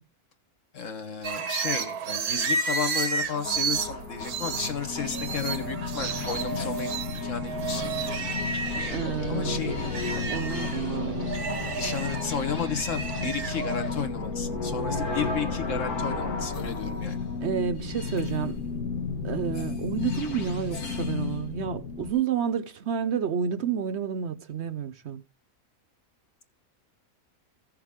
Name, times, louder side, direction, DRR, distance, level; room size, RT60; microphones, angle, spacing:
voice 1, 0.7-8.1 9.3-9.7 10.5-10.7 11.8-17.2, left 6 dB, 55° left, 1.6 m, -33 dB
sound 1, 1.2-9.1 9.5-13.8, right 5 dB, 90° right, 1.4 m, -32 dB
sound 2, 3.3-22.1, left 4 dB, 85° left, 1.8 m, -33 dB
sound 3, 7.6-14.0, left 1 dB, 30° left, 1.5 m, -42 dB
voice 2, 8.9-11.3 17.4-18.6 19.2-25.2, right 7 dB, 60° right, 0.8 m, -30 dB
15.5 x 6.8 x 3.6 m
omnidirectional pair, 1.6 m